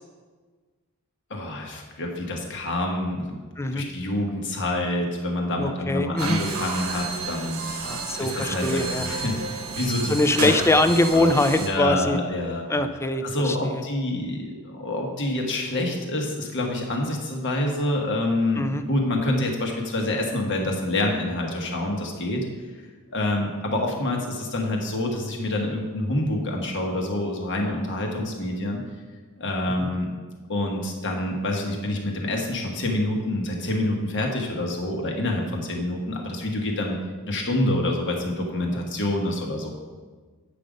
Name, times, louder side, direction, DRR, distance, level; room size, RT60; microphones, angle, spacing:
voice 1, 1.3-3.4 3.7-10.5 10.8-11.3 11.6-12.6 13.2-22.4 23.1-28.8 29.4-30.1 30.5-37.0 37.3-39.7, left 1 dB, 60° left, 1 dB, 1.3 m, -27 dB
voice 2, 5.6-6.4 7.8-9.1 10.1-12.2 12.7-13.8 18.6-18.8 29.8-29.9 38.7-38.8, left 2 dB, 10° left, 9 dB, 0.4 m, -23 dB
sound 1, 6.2-11.7, right 4 dB, 75° right, 1.1 m, -31 dB
8.5 x 5.2 x 5.1 m, 1.4 s
head